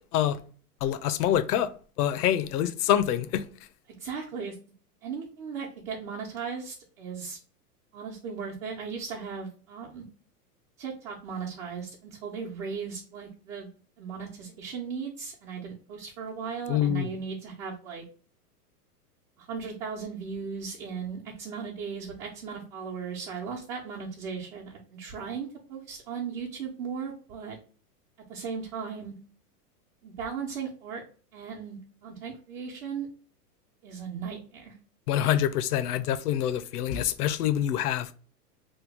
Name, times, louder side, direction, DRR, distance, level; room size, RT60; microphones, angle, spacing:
voice 1, 0.8-1.7 2.0-3.4 16.7-17.1 35.1-38.2, left 10 dB, 70° left, 0.6 m, -26 dB
voice 2, 4.0-4.5 5.0-7.4 7.9-10.0 10.8-13.7 14.0-18.0 19.4-27.6 28.3-29.1 30.0-31.0 31.3-33.1 33.8-34.8, right 6 dB, 60° right, 0.9 m, -37 dB
3.1 x 2.3 x 3.4 m
hypercardioid pair, 120°, 47 cm